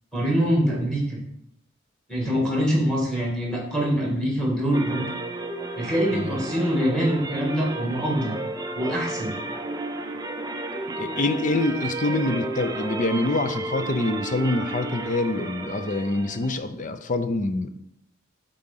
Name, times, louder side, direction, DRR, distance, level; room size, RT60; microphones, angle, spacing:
voice 1, 0.1-1.2 2.1-5.0 5.8-8.4 8.7-9.3, equal, 5° left, -2 dB, 2.2 m, -24 dB
sound 1, 4.7-16.6, right 2 dB, 15° right, 0.5 m, -33 dB
voice 2, 6.1-6.5 11.0-17.7, left 2 dB, 35° left, 9 dB, 0.6 m, -25 dB
8.3 x 3.9 x 5.7 m, 0.75 s
head